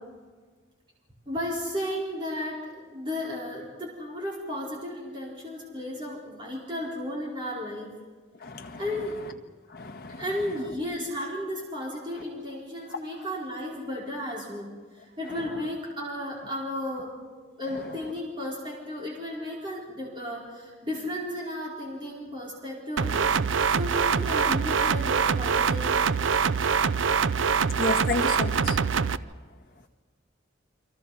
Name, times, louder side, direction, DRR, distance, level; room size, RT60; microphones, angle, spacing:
voice 1, 1.3-7.9 8.8-9.2 10.2-17.1 17.6-23.3 23.7-26.3, left 1 dB, 25° right, -4 dB, 4.8 m, -34 dB
voice 2, 8.4-8.8 9.7-10.2 27.8-28.8, left 3 dB, 50° left, 2 dB, 1.7 m, -31 dB
sound 1, 23.0-29.2, right 6 dB, 75° right, 0.6 m, -24 dB
29.5 x 24.0 x 4.3 m, 1.5 s
head